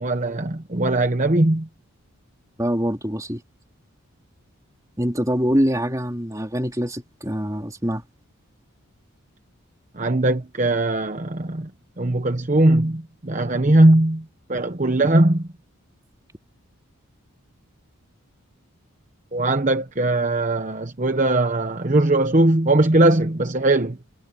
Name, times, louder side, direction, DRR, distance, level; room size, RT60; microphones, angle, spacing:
voice 1, 0.0-1.7 10.0-11.7 12.0-14.2 14.5-15.5 19.3-24.0, right 2 dB, 35° right, 1.0 m, -19 dB
voice 2, 2.6-3.4 5.0-8.0, equal, 15° right, 3.4 m, -24 dB
head